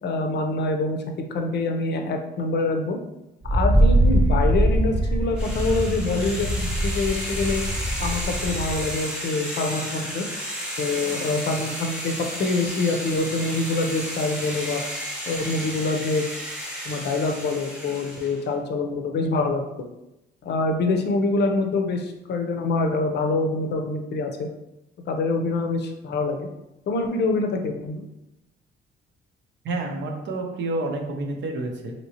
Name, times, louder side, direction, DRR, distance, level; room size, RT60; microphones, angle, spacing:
voice 1, 0.0-1.0 1.3-3.0 3.4-7.6 8.0-10.2 10.8-14.8 15.3-16.2 16.8-19.6 20.4-24.5 25.1-26.5 26.9-28.0, left 3 dB, 60° left, 4 dB, 0.5 m, -25 dB
Wind, 3.4-8.9, right 1 dB, 30° right, 0.7 m, -22 dB
sound 1, 5.4-18.4, equal, 5° right, 0.9 m, -33 dB
voice 2, 29.6-31.9, right 2 dB, 70° right, 2 dB, 0.7 m, -29 dB
2.9 x 2.9 x 2.8 m, 0.91 s
cardioid pair, 90°, 20 cm